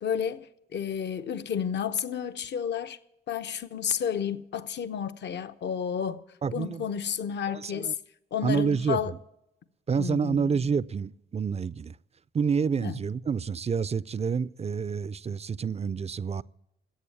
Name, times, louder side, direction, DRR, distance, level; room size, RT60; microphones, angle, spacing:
voice 1, 0.0-3.0 3.3-6.2 6.5-8.0 8.3-9.1 10.0-10.5 12.8-13.0, left 8 dB, 60° left, 0.9 m, -31 dB
voice 2, 6.4-6.8 7.5-7.9 8.4-9.0 9.9-11.9 12.3-16.4, right 6 dB, 30° right, 0.5 m, -28 dB
14.0 x 8.3 x 8.7 m
hypercardioid pair, 50°, 21 cm